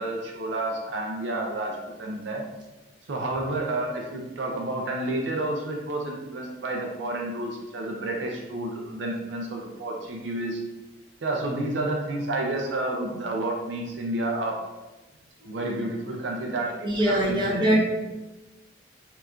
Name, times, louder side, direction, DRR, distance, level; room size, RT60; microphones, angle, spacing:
voice 1, 0.0-2.4 3.1-10.6 11.2-14.6 15.5-17.7, right 2 dB, 75° right, 0 dB, 0.4 m, -30 dB
voice 2, 16.8-17.8, right 1 dB, 25° right, -6 dB, 0.8 m, -23 dB
4.5 x 2.4 x 2.3 m, 1.1 s
head